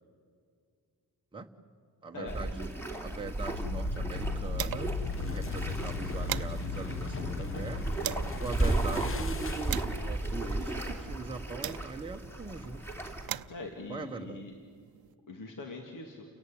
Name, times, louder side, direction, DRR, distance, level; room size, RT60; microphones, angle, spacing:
voice 1, 2.0-4.9 5.2-7.8 8.4-13.0 13.9-14.4, right 3 dB, 15° right, 2 dB, 1.1 m, -41 dB
sound 1, 2.3-13.3, right 2 dB, 5° left, 2.8 m, -35 dB
sound 2, 3.2-10.0, left 4 dB, 35° left, 1.0 m, -37 dB
sound 3, 3.3-5.1 5.4-5.5 5.8-8.4 9.0-12.2 12.9-15.1, right 12 dB, 75° right, 0.7 m, -42 dB
voice 2, 13.5-14.5 15.3-16.2, left 3 dB, 60° left, 3 dB, 2.4 m, -42 dB
29.5 x 17.5 x 10.0 m, 2.2 s
wide cardioid pair, 175°, 36 cm